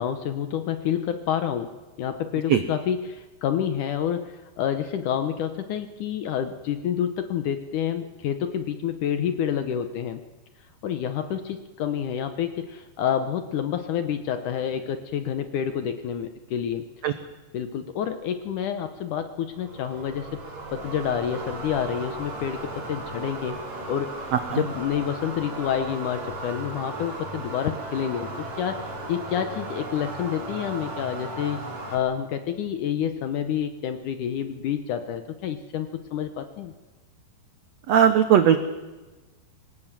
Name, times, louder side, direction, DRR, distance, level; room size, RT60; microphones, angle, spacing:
voice 1, 0.0-1.7 2.0-10.2 10.8-16.9 17.5-20.3 20.7-23.6 23.9-24.1 24.6-28.3 28.6-31.6 31.9-36.7, left 9 dB, 70° left, 9 dB, 2.1 m, -28 dB
sound 1, 19.5-32.0, right 2 dB, 45° right, 5.2 m, -36 dB
voice 2, 24.3-24.6 37.9-38.6, right 9 dB, 80° right, 9 dB, 1.5 m, -18 dB
24.5 x 19.0 x 7.5 m, 1.2 s
omnidirectional pair, 4.5 m